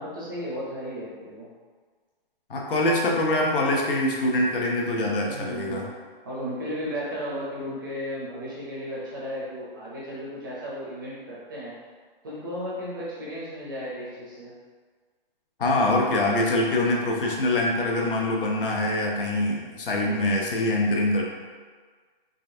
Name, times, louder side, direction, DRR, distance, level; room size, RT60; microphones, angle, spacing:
voice 1, 0.0-1.5 5.2-5.8 6.2-11.7 12.2-14.5, equal, 20° right, -6 dB, 0.5 m, -34 dB
voice 2, 2.5-5.8 15.6-21.2, left 1 dB, 65° left, -1 dB, 0.9 m, -24 dB
3.9 x 3.3 x 2.6 m, 1.5 s
hypercardioid pair, 170°, 29 cm